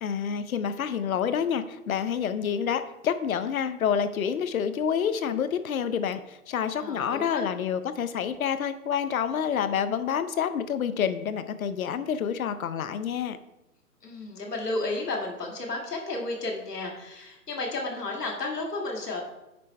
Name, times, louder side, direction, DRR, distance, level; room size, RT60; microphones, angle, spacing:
voice 1, 0.0-13.4, left 8 dB, 65° left, 12 dB, 0.7 m, -28 dB
voice 2, 6.8-7.5 14.0-19.2, left 2 dB, 90° left, 0 dB, 2.0 m, -32 dB
9.6 x 3.3 x 4.2 m, 0.95 s
hypercardioid pair, 155°, 46 cm